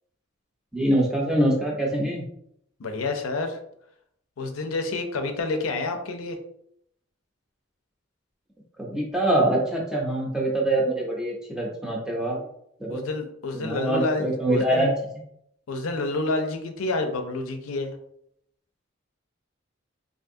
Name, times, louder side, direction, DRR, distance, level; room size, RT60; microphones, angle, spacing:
voice 1, 0.7-2.2 8.8-12.4 12.8-13.0 13.5-14.9, right 1 dB, 5° right, -3 dB, 0.6 m, -24 dB
voice 2, 2.8-3.6 4.4-6.4 12.9-14.9 15.7-18.0, left 2 dB, 85° left, 5 dB, 0.5 m, -29 dB
3.4 x 2.6 x 2.6 m, 0.73 s
head